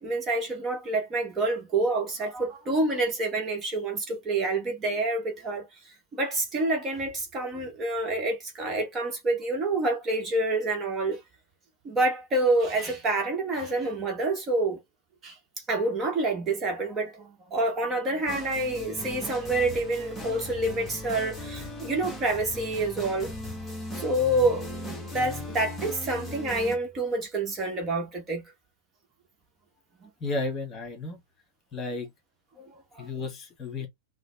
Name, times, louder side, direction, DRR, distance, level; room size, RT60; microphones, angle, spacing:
voice 1, 0.0-5.7 6.1-11.2 11.8-14.8 15.2-15.3 15.7-23.3 23.9-28.4 30.0-30.1 32.6-33.1, right 2 dB, 25° right, 1.0 m, -28 dB
sound 1, 18.3-26.8, left 1 dB, 5° left, 1.3 m, -38 dB
voice 2, 30.2-31.2 31.7-32.1 33.0-33.9, left 3 dB, 25° left, 1.5 m, -33 dB
3.9 x 2.0 x 3.2 m
figure-of-eight pair, 90°, 0 cm